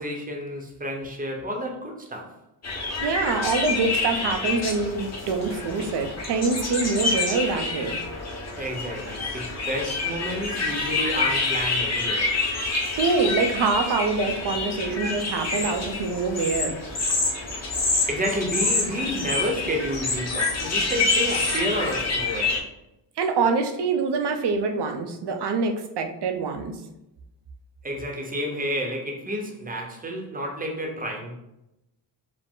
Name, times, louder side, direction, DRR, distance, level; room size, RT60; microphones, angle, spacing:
voice 1, 0.0-2.4 8.6-12.3 18.1-22.6 27.8-31.4, equal, 20° right, 2 dB, 0.8 m, -30 dB
sound 1, 2.6-22.6, left 3 dB, 35° left, 1.0 m, -27 dB
voice 2, 3.0-8.0 12.9-16.7 23.2-26.8, right 4 dB, 65° right, 5 dB, 0.7 m, -25 dB
5.0 x 2.1 x 3.7 m, 0.88 s
wide cardioid pair, 125°, 44 cm